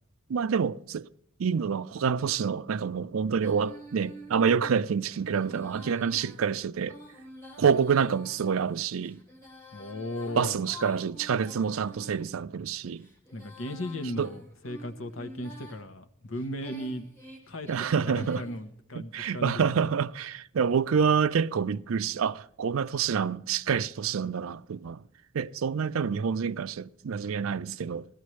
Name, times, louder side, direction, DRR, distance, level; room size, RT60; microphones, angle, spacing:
voice 1, 0.3-1.1 1.4-7.0 7.6-9.2 10.3-13.1 14.2-14.3 17.7-18.4 18.9-25.0 25.3-28.1, right 6 dB, 75° right, 0.4 m, -27 dB
Female singing, 3.3-12.3 12.8-15.8 16.3-18.6, equal, 15° left, 2.6 m, -49 dB
voice 2, 9.7-10.7 13.3-17.1 17.5-19.9, left 1 dB, 75° left, 1.1 m, -37 dB
16.5 x 13.0 x 3.1 m
head